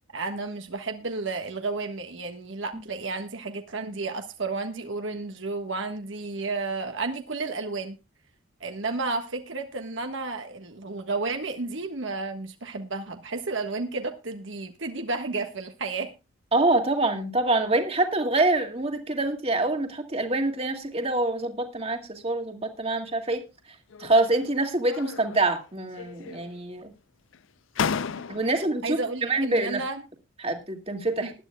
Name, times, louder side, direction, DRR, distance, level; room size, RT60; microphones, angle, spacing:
voice 1, 0.1-8.0 8.6-16.1 28.4-30.0 31.2-31.3, right 3 dB, 65° right, 5 dB, 1.4 m, -32 dB
voice 2, 16.5-23.4 24.0-26.9 28.3-29.8 30.4-31.3, right 2 dB, 30° right, 4 dB, 2.2 m, -25 dB
sound 1, 23.9-24.5 24.9-25.6 25.9-26.7 27.3-27.4 27.7-28.7, left 6 dB, 70° left, 0.5 m, -33 dB
20.0 x 12.0 x 2.3 m, 0.28 s
head